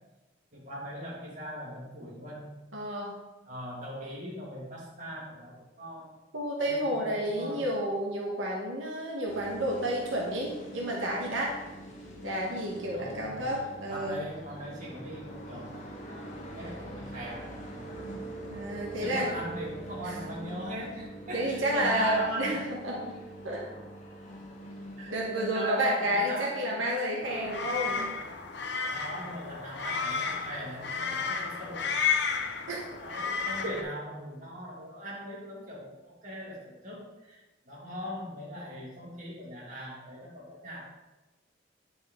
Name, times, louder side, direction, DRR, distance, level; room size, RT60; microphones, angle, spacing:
voice 1, 0.5-2.6 3.4-6.2 6.6-7.6 12.9-18.1 19.0-22.6 25.0-26.9 28.8-32.1 32.9-40.9, equal, 40° right, -5 dB, 2.5 m, -40 dB
voice 2, 2.7-3.2 6.3-11.5 12.2-14.2 18.5-19.3 20.0-20.2 21.3-23.2 23.4-23.6 25.1-28.1 32.7-32.8 33.6-33.8, right 1 dB, 90° right, -2 dB, 1.5 m, -30 dB
sound 1, 9.3-25.5, right 1 dB, 40° left, 1.4 m, -44 dB
sound 2, 27.2-33.8, left 6 dB, 60° left, 0.7 m, -32 dB
9.7 x 5.4 x 3.8 m, 1.1 s
head